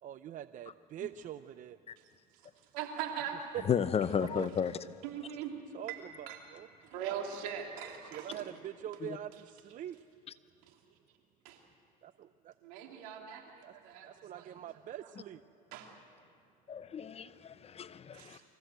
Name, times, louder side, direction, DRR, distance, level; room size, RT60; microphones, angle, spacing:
voice 1, 0.0-1.8 3.5-3.6 4.2-4.5 5.7-6.7 8.0-10.0 12.0-12.5 13.6-13.7 14.0-15.4, right 11 dB, 45° right, 13 dB, 0.5 m, -44 dB
voice 2, 2.7-3.4 5.0-5.5 5.9-6.0 6.3-6.4 6.8-8.4 10.7-10.8 11.4-11.6 12.6-14.1 14.3-14.5 15.7-15.9 18.1-18.4, right 9 dB, 85° right, 2 dB, 2.8 m, -40 dB
voice 3, 3.6-4.7 9.0-9.2 16.7-18.4, left 8 dB, 35° left, 14 dB, 0.7 m, -33 dB
25.5 x 15.0 x 8.0 m, 2.4 s
supercardioid pair, 90°, 19 cm